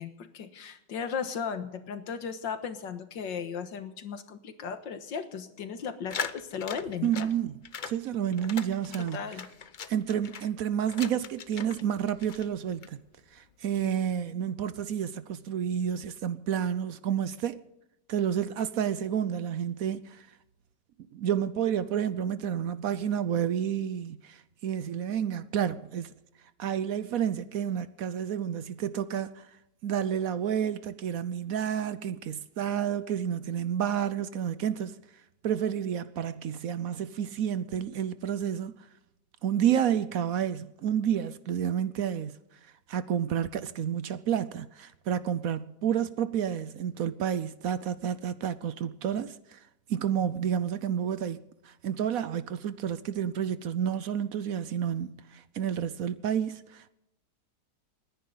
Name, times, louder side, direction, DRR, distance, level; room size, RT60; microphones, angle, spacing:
voice 1, 0.0-7.3 9.0-9.5, left 6 dB, 85° left, 2.0 m, -36 dB
sound 1, 6.1-7.3 7.6-8.0 8.3-10.5 10.9-11.8 12.1-12.9, left 6 dB, 60° left, 0.5 m, -39 dB
voice 2, 7.0-7.6 7.8-9.2 9.9-13.0 13.3-17.6 18.1-20.3 21.1-26.1 26.6-29.5 29.8-35.0 35.4-38.7 39.4-42.4 42.9-49.6 49.9-56.9, right 9 dB, 65° right, 1.0 m, -30 dB
29.5 x 10.5 x 3.9 m
omnidirectional pair, 1.9 m